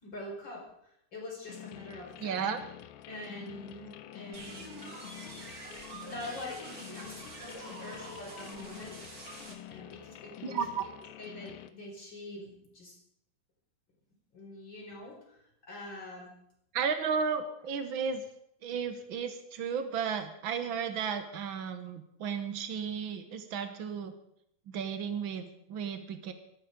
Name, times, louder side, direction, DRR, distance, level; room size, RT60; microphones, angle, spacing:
voice 1, 0.0-2.5 3.1-4.9 6.0-9.0 9.7-10.6 11.2-13.0 14.3-16.3, left 1 dB, 30° left, -1 dB, 5.2 m, -45 dB
sound 1, 1.5-11.7, left 13 dB, 75° left, 2.4 m, -48 dB
voice 2, 2.2-2.6 10.4-10.8 16.7-18.2 18.6-24.1 24.7-26.3, right 6 dB, 75° right, 8 dB, 1.1 m, -34 dB
sound 2, 4.3-9.5, right 2 dB, 30° right, 2.6 m, -46 dB
17.5 x 14.0 x 5.2 m, 0.74 s
omnidirectional pair, 4.1 m